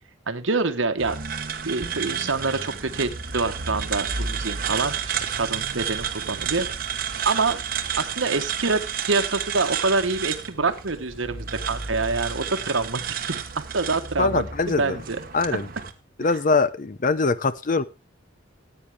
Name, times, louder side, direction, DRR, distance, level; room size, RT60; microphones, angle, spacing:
voice 1, 0.3-1.2 1.6-6.7 7.2-7.6 8.0-8.8 9.1-13.4 13.7-15.2 16.3-16.4, right 3 dB, 75° right, 8 dB, 1.1 m, -26 dB
sound 1, 1.0-15.9, right 7 dB, 50° right, 1.2 m, -31 dB
voice 2, 14.2-15.0 15.3-15.7 16.2-17.9, left 4 dB, 40° left, 16 dB, 0.6 m, -22 dB
15.5 x 8.8 x 3.4 m, 0.27 s
head